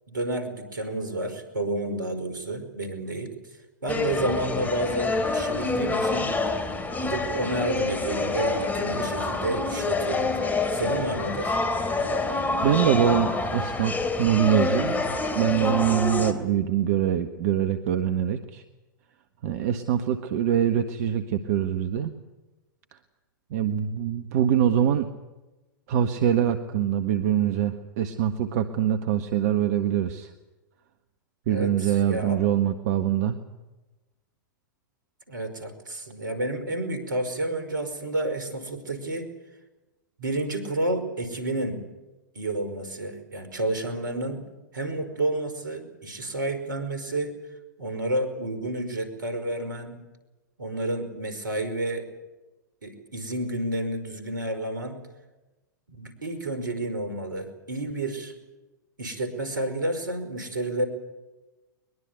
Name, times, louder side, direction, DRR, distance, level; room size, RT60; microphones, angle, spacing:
voice 1, 0.1-3.3 3.8-6.3 7.0-10.3 10.7-11.6 31.5-32.4 35.3-39.3 40.2-41.8 42.3-44.5 44.7-47.3 47.8-50.0 50.6-52.1 52.8-55.0 56.0-58.3 59.0-60.9, right 1 dB, 75° right, 10 dB, 5.2 m, -30 dB
sound 1, 3.9-16.3, left 3 dB, 15° left, 2.8 m, -27 dB
voice 2, 12.6-18.6 19.4-22.1 23.5-25.1 25.9-30.3 31.5-33.4, right 10 dB, 50° right, 8 dB, 1.6 m, -24 dB
22.5 x 22.5 x 8.3 m, 1.1 s
figure-of-eight pair, 100°, 11 cm